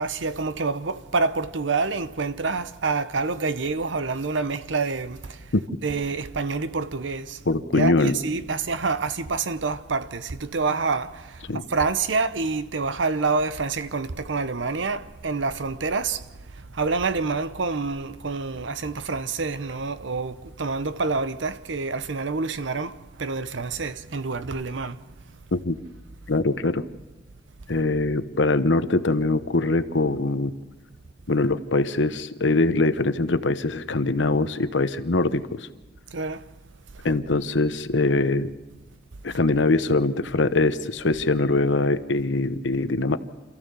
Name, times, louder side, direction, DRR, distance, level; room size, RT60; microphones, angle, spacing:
voice 1, 0.0-5.5 5.8-7.4 7.7-16.3 16.5-25.0 36.1-36.5 37.0-37.1, right 4 dB, 80° right, 0.8 m, -27 dB
voice 2, 7.5-8.2 11.5-11.6 25.5-25.8 26.3-26.8 27.7-30.5 31.3-35.7 37.0-38.5 39.2-43.2, left 2 dB, 75° left, 1.0 m, -22 dB
27.5 x 14.5 x 6.9 m
head